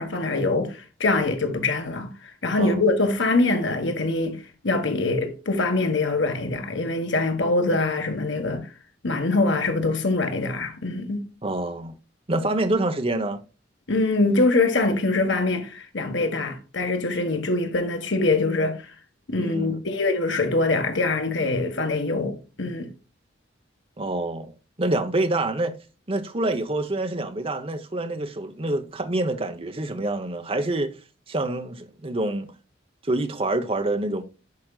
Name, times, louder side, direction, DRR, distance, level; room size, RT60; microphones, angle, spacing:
voice 1, 0.0-2.1 2.4-8.7 9.0-11.3 13.9-18.8 19.3-22.9, left 2 dB, 80° left, 1.6 m, -24 dB
voice 2, 11.4-12.0 12.3-13.4 19.4-19.8 24.0-25.7 26.1-30.9 31.3-32.5 33.0-34.2, right 2 dB, 30° right, 1.0 m, -26 dB
10.5 x 5.2 x 2.4 m
head